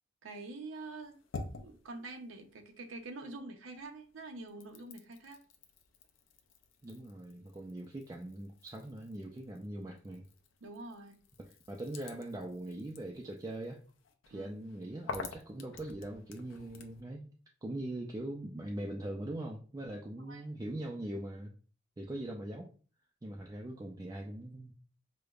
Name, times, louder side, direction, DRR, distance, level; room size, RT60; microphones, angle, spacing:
voice 1, 0.2-1.1 1.6-5.4 10.6-11.2 14.3-14.5 20.3-20.4, right 2 dB, 90° right, 5 dB, 0.6 m, -46 dB
sound 1, 0.7-3.4 3.7-17.0, left 4 dB, 70° left, 0.5 m, -50 dB
voice 2, 6.8-10.3 11.4-13.8 14.3-17.3 17.6-21.5 22.0-22.7 23.2-24.7, right 1 dB, 20° right, 0 dB, 0.3 m, -41 dB
4.9 x 2.1 x 2.3 m, 0.38 s
head